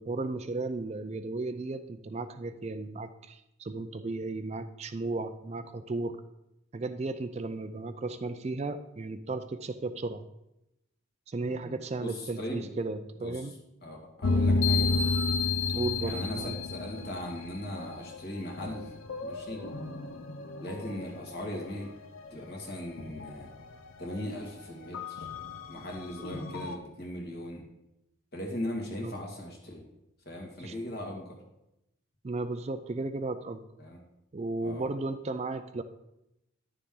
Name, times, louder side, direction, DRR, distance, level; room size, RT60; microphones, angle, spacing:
voice 1, 0.0-6.2 6.7-10.2 11.3-13.5 15.7-16.6 29.0-29.1 30.6-30.7 32.2-33.6 34.3-35.8, right 3 dB, 30° right, 10 dB, 0.4 m, -35 dB
voice 2, 11.5-12.7 13.2-13.5 13.8-15.0 16.0-18.9 19.2-19.6 20.6-21.9 22.3-23.5 24.0-25.3 25.7-27.6 28.3-29.8 30.3-31.4 33.8-34.0 34.6-34.9, left 1 dB, 50° left, -1 dB, 2.0 m, -39 dB
sound 1, 14.2-18.2 18.6-21.8 22.2-22.3 22.7-23.8 24.1-24.2 24.9-26.8, left 3 dB, 80° left, 0.7 m, -31 dB
10.5 x 6.8 x 3.8 m, 0.87 s
head